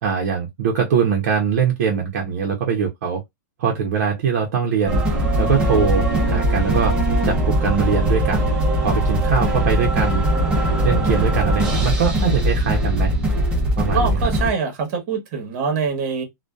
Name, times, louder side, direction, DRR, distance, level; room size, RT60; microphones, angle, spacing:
voice 1, 0.0-3.2 3.6-5.0 5.4-7.0 7.2-8.5 8.8-10.2 10.8-13.1 13.8-14.1, right 6 dB, 55° right, 0.6 m, -22 dB
sound 1, 4.9-14.5, right 1 dB, 10° right, 0.6 m, -20 dB
voice 2, 13.9-16.2, right 5 dB, 35° right, 1.0 m, -24 dB
2.6 x 2.1 x 2.2 m
supercardioid pair, 170°, 10 cm